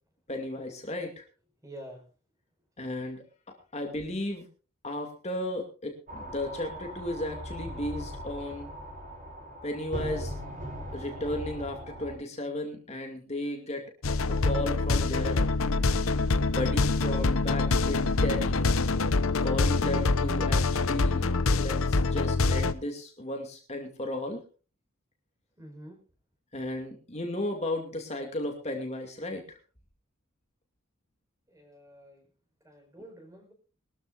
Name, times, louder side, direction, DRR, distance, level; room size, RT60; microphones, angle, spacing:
voice 1, 0.3-1.2 2.8-3.2 3.7-4.5 4.8-8.7 9.6-10.3 10.9-13.9 14.3-15.5 16.4-18.6 19.4-24.4 26.5-29.6, left 1 dB, 30° left, 3 dB, 2.4 m, -34 dB
voice 2, 1.6-2.0 25.6-26.0 31.5-32.3 32.6-33.5, right 1 dB, 15° right, 3 dB, 4.6 m, -47 dB
sound 1, 6.1-12.1, equal, 40° right, 7.0 m, -39 dB
sound 2, 14.0-22.7, left 3 dB, 85° left, 0.9 m, -25 dB
22.0 x 13.5 x 2.5 m, 0.35 s
head